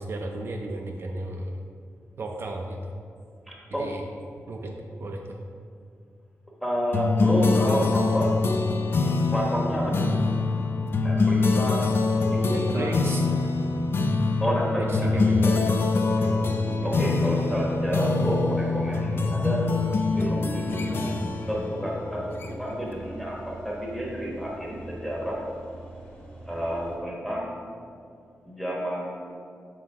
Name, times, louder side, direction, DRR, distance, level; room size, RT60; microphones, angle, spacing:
voice 1, 0.0-1.5 2.2-2.8 3.8-4.0 4.5-5.4 12.5-13.5 14.8-15.5 16.2-16.4 16.8-17.0, right 2 dB, 50° right, 1 dB, 0.4 m, -34 dB
voice 2, 3.5-3.9 6.6-8.3 9.3-10.1 11.0-11.8 12.2-12.9 14.4-15.5 16.8-19.6 20.1-21.2 21.5-25.4 26.4-27.6 28.4-29.3, equal, ahead, -4 dB, 1.1 m, -30 dB
sound 1, 6.9-22.8, left 3 dB, 45° left, 0.4 m, -24 dB
sound 2, 16.9-27.0, right 1 dB, 20° left, 1.4 m, -43 dB
6.2 x 4.0 x 4.5 m, 2.3 s
wide cardioid pair, 170°, 5 cm